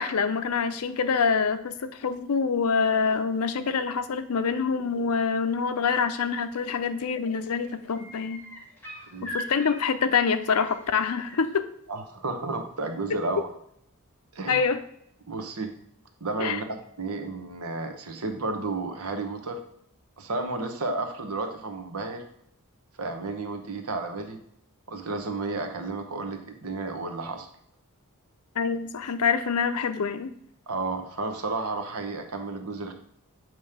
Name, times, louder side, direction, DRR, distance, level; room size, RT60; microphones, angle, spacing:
voice 1, 0.0-8.4 9.2-11.6 14.5-14.8 16.4-16.6 28.6-30.3, left 5 dB, 80° left, 11 dB, 0.5 m, -26 dB
sound 1, 6.8-7.1 7.4-11.5 13.1-13.2, equal, 10° left, 1.6 m, -41 dB
voice 2, 11.9-13.5 14.3-14.7 15.3-15.7 16.2-16.6 17.0-19.6 20.2-22.2 23.0-24.4 24.9-27.5 30.7-32.9, right 3 dB, 75° right, 5 dB, 1.0 m, -32 dB
7.4 x 3.1 x 4.9 m, 0.71 s
head